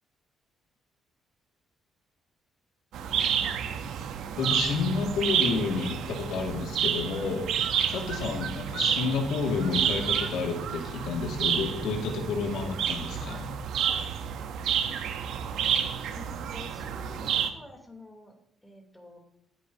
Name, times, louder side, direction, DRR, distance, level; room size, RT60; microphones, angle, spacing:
sound 1, 2.9-17.5, right 8 dB, 80° right, 1.0 m, -30 dB
voice 1, 4.4-7.5 7.9-13.5, left 4 dB, 85° left, 0 dB, 2.3 m, -30 dB
voice 2, 14.7-15.1 16.1-18.3 18.6-19.2, left 1 dB, 10° left, 1 dB, 3.4 m, -48 dB
19.5 x 8.5 x 2.9 m, 0.74 s
cardioid pair, 90°, 0 cm